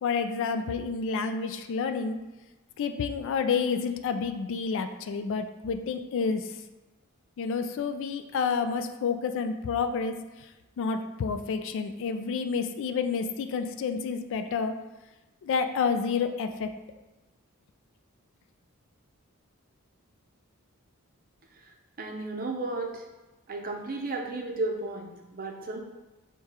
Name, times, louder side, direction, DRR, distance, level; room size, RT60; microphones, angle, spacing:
voice 1, 0.0-2.2 2.8-6.5 7.4-10.2 10.8-14.8 15.4-16.7, left 5 dB, 60° left, 8 dB, 0.3 m, -29 dB
voice 2, 22.0-23.0 23.5-25.8, right 2 dB, 40° right, 1 dB, 0.6 m, -33 dB
6.4 x 2.3 x 2.9 m, 1.1 s
head